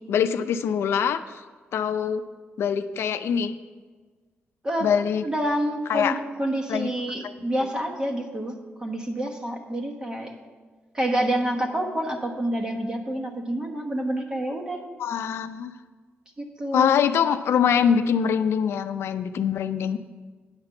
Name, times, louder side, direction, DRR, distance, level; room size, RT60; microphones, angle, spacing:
voice 1, 0.1-1.2 1.7-2.2 2.6-3.5 4.8-5.2 5.9-6.2 6.7-6.9 7.2-7.3 15.0-15.7 16.7-20.0, left 7 dB, 80° left, 10 dB, 0.5 m, -23 dB
voice 2, 5.2-10.3 10.9-14.8 16.4-16.9, right 1 dB, 20° right, 2 dB, 1.1 m, -28 dB
9.6 x 5.9 x 6.8 m, 1.4 s
wide cardioid pair, 160°, 4 cm